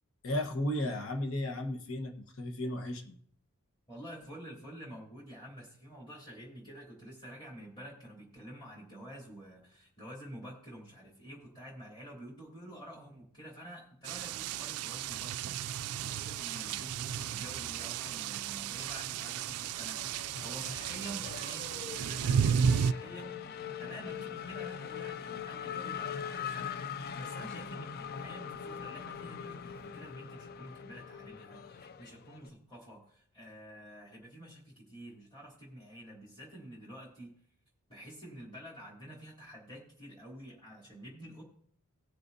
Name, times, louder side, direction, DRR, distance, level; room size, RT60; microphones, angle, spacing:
voice 1, 0.2-3.2, left 1 dB, 65° left, 4 dB, 1.3 m, -34 dB
voice 2, 3.9-37.3 37.9-41.4, right 1 dB, 20° left, -6 dB, 3.0 m, -49 dB
sound 1, 14.1-22.9, right 7 dB, 85° right, 0.3 m, -33 dB
Race car auto racing / Accelerating revving vroom, 17.5-18.5 18.8-32.5, left 7 dB, 45° left, 0.4 m, -42 dB
19.5 x 6.7 x 2.7 m, 0.64 s
head